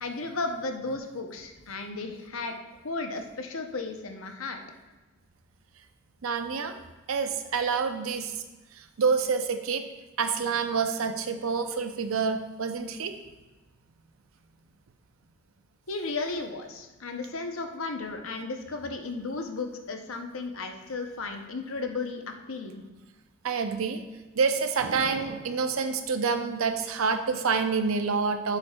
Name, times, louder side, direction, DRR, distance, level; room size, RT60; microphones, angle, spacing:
voice 1, 0.0-2.6 2.8-4.6 15.9-22.8, left 3 dB, 80° left, 5 dB, 0.8 m, -34 dB
voice 2, 6.2-6.7 7.1-8.3 8.8-9.8 10.2-13.1 23.4-24.0 24.4-28.6, right 5 dB, 85° right, 8 dB, 0.6 m, -27 dB
10.5 x 7.0 x 2.3 m, 1.1 s
head